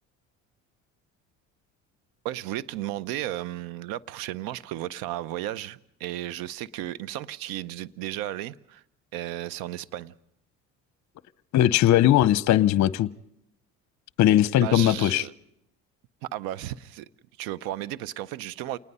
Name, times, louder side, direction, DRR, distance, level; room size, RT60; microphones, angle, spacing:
voice 1, 2.2-8.8 9.1-10.1 14.6-15.3 16.2-17.1 17.4-18.8, right 13 dB, 80° right, 0.8 m, -34 dB
voice 2, 11.5-13.1 14.2-15.2, left 12 dB, 55° left, 0.7 m, -19 dB
27.5 x 19.5 x 5.5 m
supercardioid pair, 75°, 35 cm